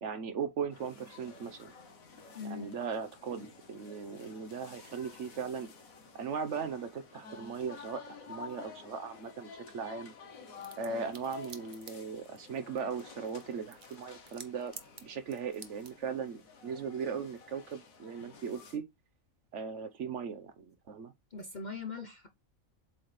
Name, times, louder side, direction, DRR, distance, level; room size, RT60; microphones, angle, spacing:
voice 1, 0.0-1.7 2.4-5.7 6.1-10.1 10.8-14.7 15.0-18.8 19.5-21.1, right 6 dB, 60° right, 1.1 m, -38 dB
sound 1, 0.7-18.8, left 5 dB, 85° left, 1.7 m, -52 dB
voice 2, 2.3-2.7 10.9-11.0 21.3-22.3, left 4 dB, 45° left, 0.7 m, -41 dB
sound 2, 10.5-16.0, right 5 dB, 40° right, 1.0 m, -53 dB
7.8 x 4.2 x 3.2 m
omnidirectional pair, 1.4 m